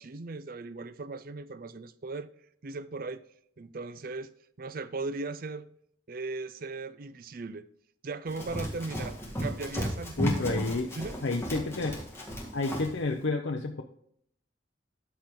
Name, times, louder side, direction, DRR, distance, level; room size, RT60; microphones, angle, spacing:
voice 1, 0.0-2.3 2.6-3.2 3.6-4.3 4.6-5.7 6.1-7.7 8.0-10.6 11.0-11.2, right 3 dB, 50° right, 0.5 m, -38 dB
Run, 8.3-13.0, equal, 15° left, 1.8 m, -35 dB
voice 2, 10.2-10.9 11.2-12.0 12.5-13.8, left 3 dB, 75° left, 0.7 m, -30 dB
12.5 x 4.5 x 3.6 m
head